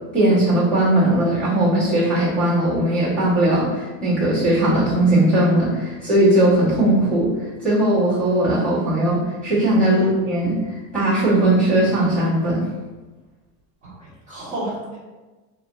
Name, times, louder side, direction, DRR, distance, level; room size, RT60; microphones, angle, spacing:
voice 1, 0.1-7.3 7.6-10.6 10.9-12.6, right 1 dB, ahead, -12 dB, 1.4 m, -18 dB
voice 2, 13.8-15.0, right 1 dB, 20° right, -11 dB, 1.5 m, -32 dB
3.3 x 2.2 x 3.0 m, 1.2 s
supercardioid pair, 130°, 39 cm